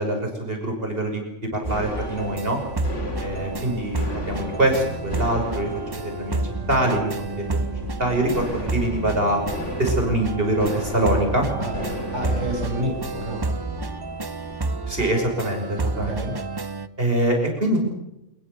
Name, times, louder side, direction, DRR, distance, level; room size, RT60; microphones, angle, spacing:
voice 1, 0.0-2.6 3.2-6.4 6.7-7.6 8.0-9.4 9.8-11.5 12.2-12.4 14.9-16.2 17.0-17.8, right 1 dB, 50° right, 3 dB, 6.5 m, -24 dB
sound 1, 1.6-15.1, left 1 dB, 70° left, 4.4 m, -36 dB
sound 2, 1.6-16.9, right 3 dB, 25° right, 0.7 m, -30 dB
voice 2, 12.1-13.5 15.8-16.4, right 1 dB, 65° right, 1 dB, 7.3 m, -29 dB
27.5 x 21.0 x 6.9 m, 0.89 s
omnidirectional pair, 1.3 m